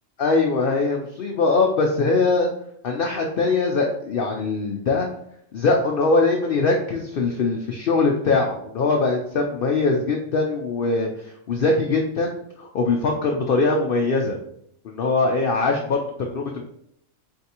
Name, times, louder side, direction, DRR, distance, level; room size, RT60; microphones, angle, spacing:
voice 1, 0.2-2.5 2.8-5.1 5.5-14.4 14.8-16.6, left 3 dB, 60° left, 1 dB, 0.6 m, -22 dB
4.6 x 3.4 x 2.8 m, 0.72 s
omnidirectional pair, 1.4 m